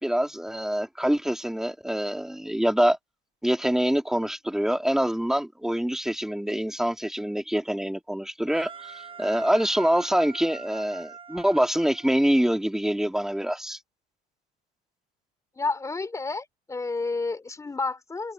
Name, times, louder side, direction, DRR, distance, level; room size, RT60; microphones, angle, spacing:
voice 1, 0.0-3.0 3.4-13.8, equal, 5° right, 2.4 m, -25 dB
sound 1, 8.5-12.6, right 6 dB, 30° right, 7.7 m, -44 dB
voice 2, 15.6-18.3, left 3 dB, 15° left, 3.9 m, -30 dB
cardioid pair, 115°, 18 cm